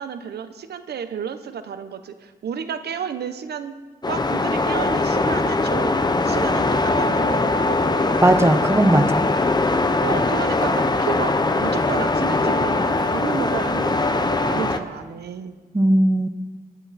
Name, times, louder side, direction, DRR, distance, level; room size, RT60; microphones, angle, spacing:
voice 1, 0.0-3.8 4.0-8.3 10.0-15.6, right 7 dB, 90° right, 10 dB, 0.9 m, -32 dB
sound 1, 4.0-14.8, left 2 dB, 25° left, 0.9 m, -21 dB
voice 2, 8.2-9.2 15.7-16.3, right 1 dB, 15° right, 9 dB, 1.0 m, -17 dB
23.0 x 9.9 x 4.2 m, 1.3 s
cardioid pair, 85°, 16 cm